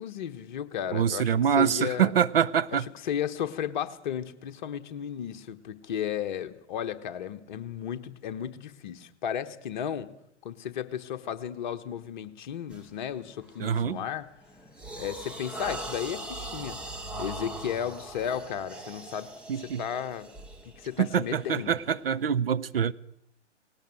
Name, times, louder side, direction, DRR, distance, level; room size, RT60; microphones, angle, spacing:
voice 1, 0.0-2.1 2.7-10.1 10.4-14.3 15.0-16.8 17.2-19.3 19.6-20.3 20.6-21.7, left 9 dB, 40° left, 1.3 m, -34 dB
voice 2, 0.9-2.9 13.6-14.0 19.5-19.8 21.0-22.9, right 8 dB, 50° right, 0.7 m, -25 dB
sound 1, 12.7-12.9 13.4-13.7 14.2-22.3, right 1 dB, 5° right, 0.7 m, -41 dB
19.0 x 18.0 x 7.8 m
figure-of-eight pair, 125°, 36 cm